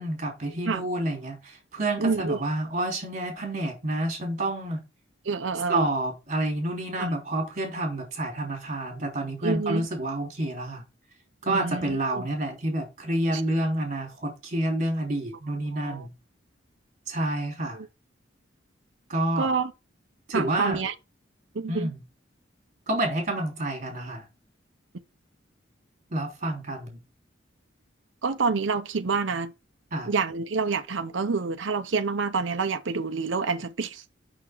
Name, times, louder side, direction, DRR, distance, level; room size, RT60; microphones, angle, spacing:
voice 1, 0.0-4.8 5.7-10.8 11.4-16.1 17.1-17.8 19.1-19.5 20.3-20.8 21.7-22.0 22.9-24.2 26.1-27.0 29.9-30.1, right 1 dB, 40° right, 3.2 m, -29 dB
voice 2, 2.0-2.4 5.3-5.9 7.0-7.1 9.4-9.9 11.5-12.3 13.3-13.4 15.7-16.1 17.7-17.9 19.4-19.7 20.3-20.9 21.5-21.9 28.2-29.5 30.0-34.0, right 4 dB, 75° right, 0.7 m, -28 dB
6.2 x 6.0 x 4.5 m
head